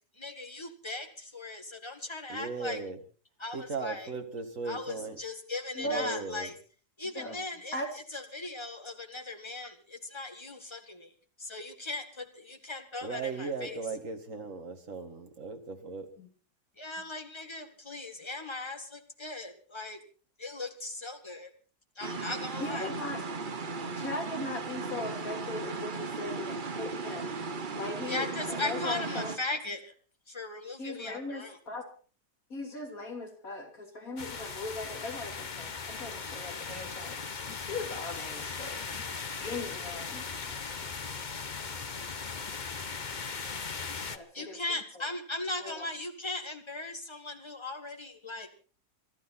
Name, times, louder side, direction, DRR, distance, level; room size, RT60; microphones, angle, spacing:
voice 1, 0.2-2.8 3.4-4.1 4.7-6.5 7.0-7.8 8.1-11.1 11.4-13.8 16.8-20.0 20.4-21.5 22.0-22.9 28.1-29.9 30.3-31.5 44.3-48.5, left 2 dB, 15° left, 1.9 m, -38 dB
voice 2, 2.3-3.0 3.5-5.2 5.8-6.5 13.0-16.1, right 3 dB, 50° right, 2.3 m, -37 dB
voice 3, 5.7-6.2 7.0-7.4 7.7-8.0 16.2-16.3 22.6-23.2 24.0-27.4 27.8-29.4 30.8-31.9 32.5-37.2 37.5-39.1 39.4-41.0 44.0-45.1 45.6-45.9, left 2 dB, 60° left, 3.7 m, -39 dB
sound 1, 22.0-29.4, right 4 dB, 35° right, 1.1 m, -36 dB
sound 2, 34.2-44.2, left 5 dB, 35° left, 1.0 m, -38 dB
26.0 x 12.0 x 4.3 m
omnidirectional pair, 1.7 m